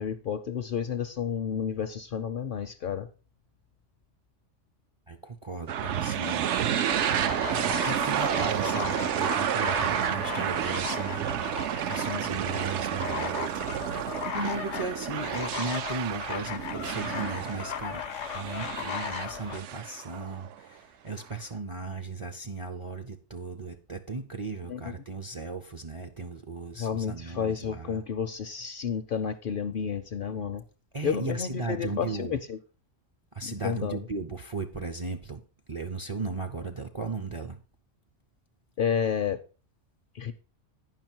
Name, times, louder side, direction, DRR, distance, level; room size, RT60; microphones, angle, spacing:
voice 1, 0.0-3.1 24.7-24.8 26.8-30.6 31.0-32.6 33.4-34.0 38.8-39.4 40.1-40.3, left 7 dB, 60° left, 0.6 m, -31 dB
voice 2, 5.1-6.5 7.4-13.6 14.3-18.0 18.3-28.0 30.9-32.4 33.3-35.4 35.7-37.6, right 3 dB, 40° right, 0.5 m, -36 dB
sound 1, 5.7-20.6, right 9 dB, 75° right, 0.9 m, -30 dB
sound 2, 6.9-19.6, left 10 dB, 85° left, 1.0 m, -37 dB
9.3 x 5.7 x 4.4 m
omnidirectional pair, 1.3 m